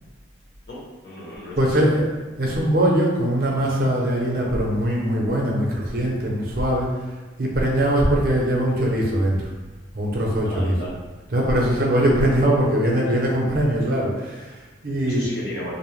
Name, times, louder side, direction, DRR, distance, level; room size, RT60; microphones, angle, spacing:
voice 1, 0.7-2.0 10.5-10.9 11.7-11.9 12.9-13.2 14.9-15.7, equal, 60° left, -6 dB, 0.9 m, -36 dB
voice 2, 1.6-2.1 2.4-6.9 7.4-9.4 9.9-10.7 11.3-15.2, right 1 dB, 50° right, -2 dB, 0.5 m, -21 dB
2.5 x 2.0 x 3.0 m, 1.2 s
head